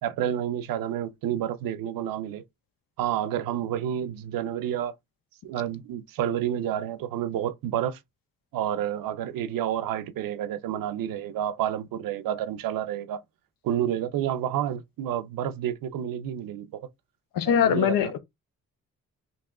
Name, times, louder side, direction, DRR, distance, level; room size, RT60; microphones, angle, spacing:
voice 1, 0.0-2.4 3.0-4.9 5.4-8.0 8.5-13.2 13.6-16.9 17.5-18.0, right 10 dB, 90° right, 0.6 m, -29 dB
voice 2, 17.3-18.2, left 9 dB, 85° left, 0.7 m, -22 dB
2.9 x 2.9 x 3.6 m
cardioid pair, 100°, 33 cm